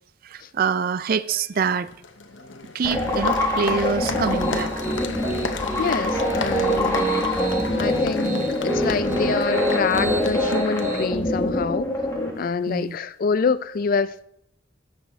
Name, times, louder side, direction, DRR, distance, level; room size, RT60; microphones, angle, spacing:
voice 1, 0.2-1.9 2.7-4.8 12.7-13.0, right 6 dB, 50° right, 0.4 m, -25 dB
Applause, 1.5-11.6, left 4 dB, 75° left, 0.9 m, -35 dB
sound 1, 2.8-12.3, left 1 dB, 15° left, 1.6 m, -25 dB
Piano, 4.2-11.0, right 1 dB, 15° right, 1.0 m, -27 dB
voice 2, 5.8-7.3 7.8-12.1 12.4-14.2, left 5 dB, 45° left, 0.4 m, -26 dB
16.5 x 6.1 x 3.5 m
head